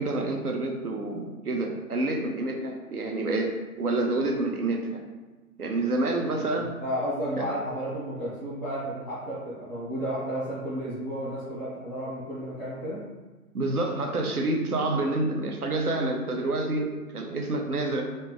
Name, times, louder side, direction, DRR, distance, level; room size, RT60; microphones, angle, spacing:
voice 1, 0.0-3.5 3.8-5.0 5.6-6.7 7.4-7.5 13.5-18.0, right 2 dB, 75° right, 1 dB, 0.8 m, -28 dB
voice 2, 6.6-13.0, equal, ahead, -12 dB, 0.5 m, -32 dB
4.0 x 2.6 x 3.5 m, 1.2 s
figure-of-eight pair, 130°, 45 cm